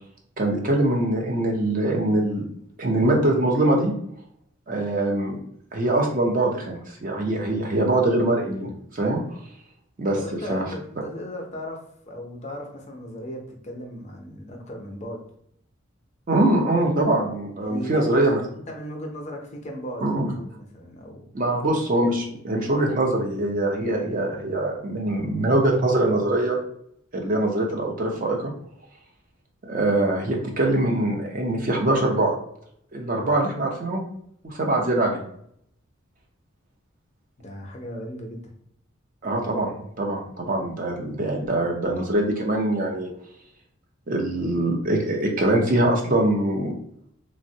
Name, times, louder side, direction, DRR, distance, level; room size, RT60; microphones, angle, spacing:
voice 1, 0.4-2.5 2.8-3.9 4.7-5.4 5.7-9.2 10.0-10.2 10.5-10.6 16.3-18.4 20.0-20.3 21.3-26.6 27.1-28.5 29.6-32.3 32.9-34.0 34.4-35.2 39.2-43.1 44.1-46.7, right 1 dB, 40° right, 0 dB, 0.5 m, -23 dB
voice 2, 10.1-11.8 12.1-15.2 17.6-21.3 37.4-38.5, equal, 30° left, 1 dB, 0.5 m, -36 dB
3.4 x 2.0 x 2.6 m, 0.69 s
head